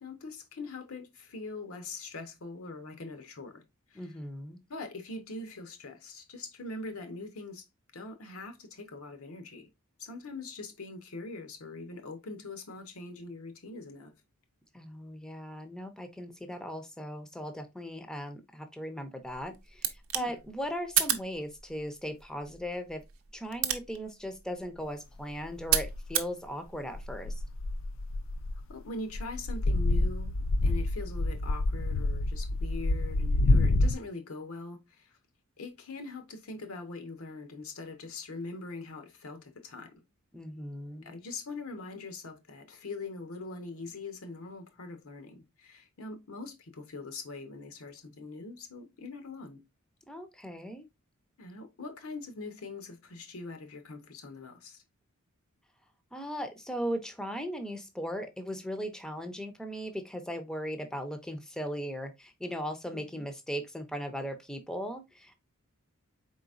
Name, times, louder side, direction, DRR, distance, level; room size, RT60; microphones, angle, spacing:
voice 1, 0.0-3.6 3.9-4.1 4.7-7.6 7.9-9.7 10.0-14.1 20.2-20.3 28.7-30.3 30.6-35.2 35.6-40.0 41.0-49.6 51.4-54.8 62.9-63.2, left 3 dB, 85° left, 0.8 m, -42 dB
voice 2, 4.0-4.6 14.7-23.0 23.3-27.4 40.3-41.2 50.1-50.9 56.1-65.4, equal, 5° left, 0.4 m, -38 dB
sound 1, 19.3-26.4, right 11 dB, 75° right, 0.6 m, -34 dB
sound 2, 25.6-26.1 26.9-28.7 29.1-34.0, left 2 dB, 65° left, 0.4 m, -28 dB
4.2 x 3.9 x 2.4 m
head